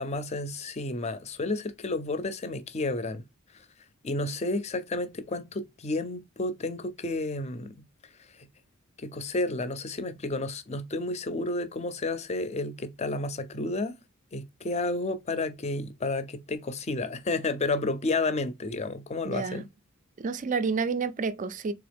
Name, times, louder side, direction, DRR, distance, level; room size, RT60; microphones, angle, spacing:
voice 1, 0.0-3.2 3.5-3.6 4.0-7.8 8.4-8.5 9.0-14.0 14.3-19.7, left 2 dB, 30° left, 0.5 m, -31 dB
voice 2, 19.2-19.6 20.2-21.7, right 5 dB, 35° right, 0.4 m, -29 dB
3.8 x 3.4 x 3.4 m
head